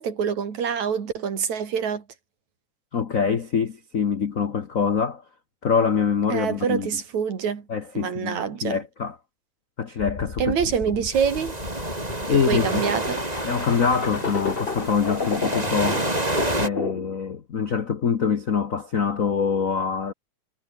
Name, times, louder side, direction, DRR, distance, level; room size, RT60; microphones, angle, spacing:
voice 1, 0.0-2.0 6.3-7.7 7.9-8.8 10.4-11.6 12.3-13.2, right 7 dB, 75° right, 4.2 m, -26 dB
voice 2, 2.9-5.2 5.6-6.9 7.7-9.2 9.8-10.6 12.3-12.8 13.4-16.0 16.6-20.1, left 6 dB, 70° left, 0.7 m, -24 dB
sound 1, 10.0-17.2, left 4 dB, 25° left, 1.5 m, -32 dB
sound 2, 11.1-16.7, right 1 dB, 15° right, 3.7 m, -29 dB
omnidirectional pair, 3.3 m